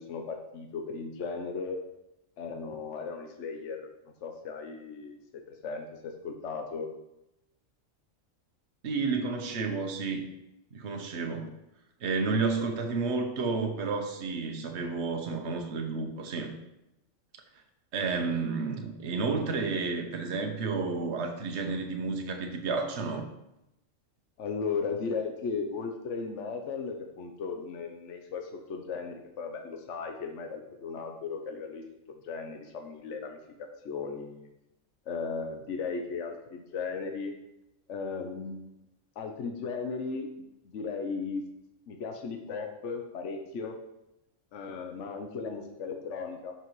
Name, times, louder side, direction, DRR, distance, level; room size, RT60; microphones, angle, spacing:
voice 1, 0.0-1.8 2.4-3.9 4.2-6.9 24.4-34.5 35.1-37.3 37.9-38.8 39.2-41.4 41.9-43.8 44.5-46.5, left 5 dB, 70° left, 4 dB, 1.1 m, -36 dB
voice 2, 8.8-10.2 10.7-11.5 12.0-16.5 17.9-23.2, right 4 dB, 60° right, 4 dB, 1.2 m, -31 dB
13.0 x 5.9 x 3.1 m, 0.89 s
omnidirectional pair, 1.3 m